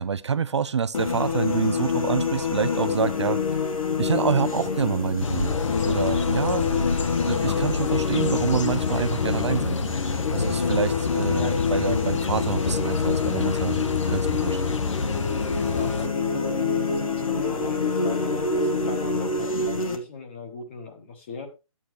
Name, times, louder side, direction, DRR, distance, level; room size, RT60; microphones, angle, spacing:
voice 1, 0.0-3.7 4.0-5.5 5.9-6.7 7.2-9.9 10.3-14.6, right 6 dB, 55° right, 0.4 m, -27 dB
sound 1, 0.9-20.0, left 5 dB, 75° left, 1.9 m, -26 dB
sound 2, 5.2-16.1, left 5 dB, 60° left, 0.8 m, -28 dB
voice 2, 15.5-21.5, left 4 dB, 20° left, 1.2 m, -38 dB
11.5 x 8.6 x 3.1 m
hypercardioid pair, 175°, 18 cm